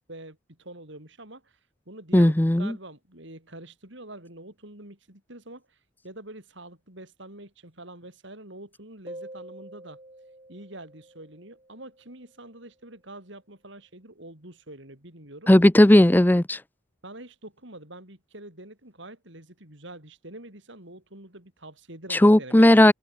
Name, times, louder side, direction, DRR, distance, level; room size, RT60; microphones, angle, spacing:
voice 1, 0.0-1.6 1.9-5.8 6.0-10.0 10.5-15.5 17.0-22.7, right 1 dB, 60° right, 5.3 m, -45 dB
voice 2, 2.1-2.7 15.5-16.6 22.1-22.9, left 1 dB, 10° left, 0.5 m, -16 dB
sound 1, 9.1-12.4, right 1 dB, 30° right, 5.4 m, -46 dB
open air
head